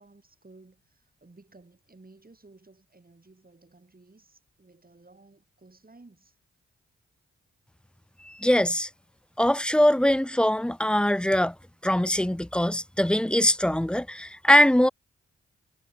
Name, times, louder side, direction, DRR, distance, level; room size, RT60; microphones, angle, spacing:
voice 1, 0.0-6.4, right 3 dB, 30° right, 7.5 m, -55 dB
voice 2, 8.2-8.9 9.4-11.5 11.8-14.9, equal, 5° left, 0.4 m, -22 dB
supercardioid pair, 40°, 30 cm